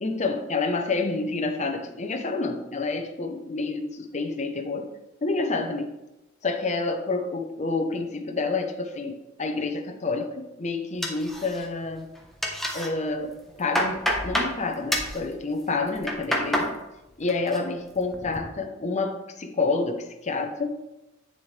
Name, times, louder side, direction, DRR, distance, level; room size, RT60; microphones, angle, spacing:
voice 1, 0.0-4.9 5.2-6.0 6.4-12.1 12.7-16.8 17.2-20.7, left 3 dB, 35° left, 3 dB, 0.8 m, -28 dB
sound 1, 11.0-11.9 12.1-12.9 13.3-14.5 14.9-15.2 15.8-16.7 17.1-17.6 18.0-18.4, equal, ahead, 1.1 m, -28 dB
8.8 x 6.8 x 3.4 m, 0.95 s
head